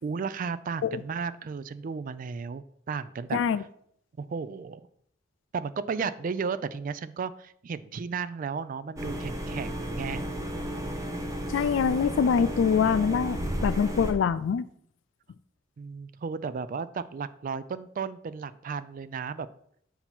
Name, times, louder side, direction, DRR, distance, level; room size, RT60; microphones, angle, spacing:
voice 1, 0.0-3.7 4.2-4.8 5.5-10.2 15.8-19.5, right 5 dB, 45° right, 15 dB, 0.3 m, -34 dB
voice 2, 3.3-3.6 11.5-14.6, left 6 dB, 75° left, 15 dB, 0.3 m, -24 dB
sound 1, 9.0-14.1, equal, 15° right, 0.7 m, -33 dB
7.9 x 2.8 x 5.8 m, 0.67 s
head